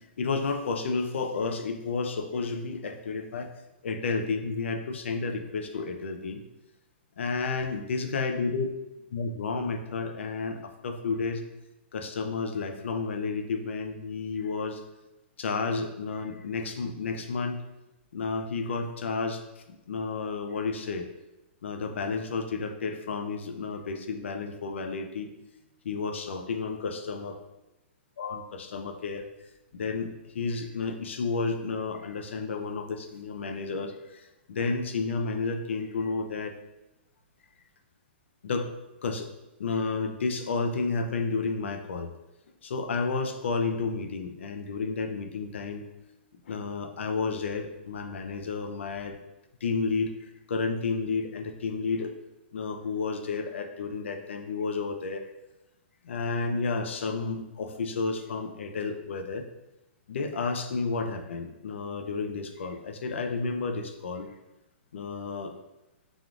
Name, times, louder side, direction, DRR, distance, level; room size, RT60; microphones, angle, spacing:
voice 1, 0.2-3.5 3.8-6.4 7.2-8.7 9.1-11.4 11.9-14.8 15.4-17.6 18.1-19.4 19.7-21.1 21.6-25.3 25.8-27.4 28.2-29.3 29.7-36.6 38.4-38.7 39.0-39.3 39.6-42.1 42.6-45.8 46.5-49.2 49.6-50.1 50.5-52.1 52.5-55.2 56.0-59.4 60.1-64.3 64.9-65.5, left 4 dB, 90° left, 7 dB, 0.4 m, -31 dB
3.4 x 2.4 x 2.4 m, 0.96 s
hypercardioid pair, 155°, 6 cm